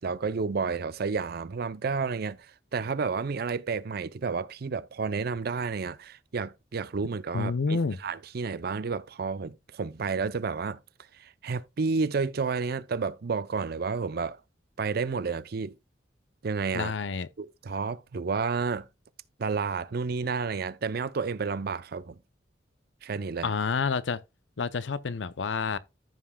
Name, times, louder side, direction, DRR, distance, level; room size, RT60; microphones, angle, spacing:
voice 1, 0.0-2.4 2.7-10.8 11.2-14.4 14.8-15.8 16.4-16.9 17.4-18.9 19.4-22.2 23.0-23.5, right 4 dB, 55° right, 0.5 m, -31 dB
voice 2, 7.3-8.0 16.7-17.3 23.4-24.2 24.6-25.8, left 4 dB, 80° left, 0.6 m, -29 dB
14.5 x 5.6 x 2.3 m
head